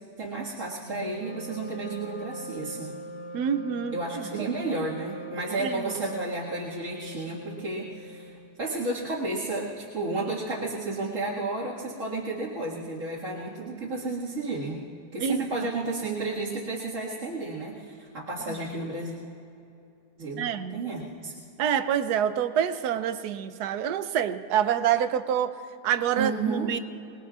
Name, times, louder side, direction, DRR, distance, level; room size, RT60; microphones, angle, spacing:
voice 1, 0.2-2.9 3.9-14.8 15.1-19.1 20.2-21.5 26.1-26.7, right 3 dB, 50° right, -9 dB, 2.3 m, -32 dB
Wind instrument woodwind instrument, 0.7-8.6, right 1 dB, 90° left, 4.4 m, -41 dB
voice 2, 3.3-4.5 5.6-5.9 15.2-15.7 20.4-20.8 21.6-26.8, right 8 dB, 75° right, 11 dB, 1.2 m, -27 dB
26.5 x 20.0 x 2.5 m, 2.7 s
omnidirectional pair, 1.8 m